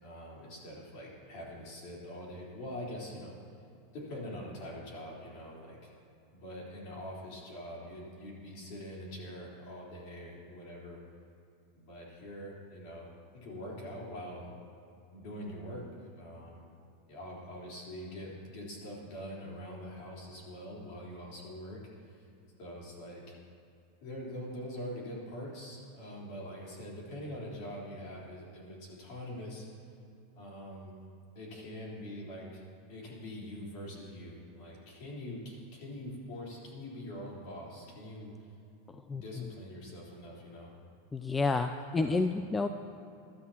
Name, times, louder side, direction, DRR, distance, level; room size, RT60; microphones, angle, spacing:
voice 1, 0.0-3.4 3.9-5.9 6.3-11.0 11.8-14.5 15.1-16.6 17.1-22.3 22.6-23.4 24.0-29.7 30.4-30.9 31.4-32.6 32.9-38.3 39.1-40.7 41.9-42.2, equal, 45° left, -4 dB, 3.8 m, -44 dB
voice 2, 41.1-42.7, left 3 dB, 10° left, 7 dB, 0.3 m, -30 dB
21.5 x 12.5 x 2.9 m, 2.7 s
supercardioid pair, 165°, 0 cm